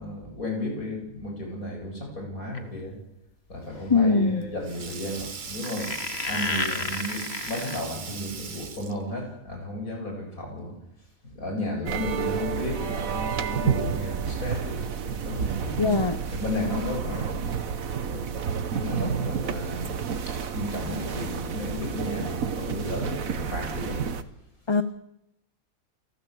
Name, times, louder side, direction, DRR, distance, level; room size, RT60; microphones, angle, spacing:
voice 1, 0.0-3.0 3.5-10.8 11.2-15.8 16.3-17.5 18.0-20.0 20.3-24.1, left 1 dB, 80° left, 2 dB, 8.7 m, -34 dB
sound 1, 2.5-2.8 3.8-3.9 5.6-7.8, left 3 dB, 45° left, 2.1 m, -31 dB
voice 2, 3.9-4.4 15.8-16.2 24.7-24.8, left 4 dB, 25° left, 11 dB, 0.8 m, -21 dB
Sink (filling or washing), 4.0-9.2, right 5 dB, 40° right, 1.1 m, -39 dB
sound 2, 11.9-24.2, right 7 dB, 75° right, 1.7 m, -30 dB
29.0 x 16.5 x 8.4 m, 0.85 s
omnidirectional pair, 1.5 m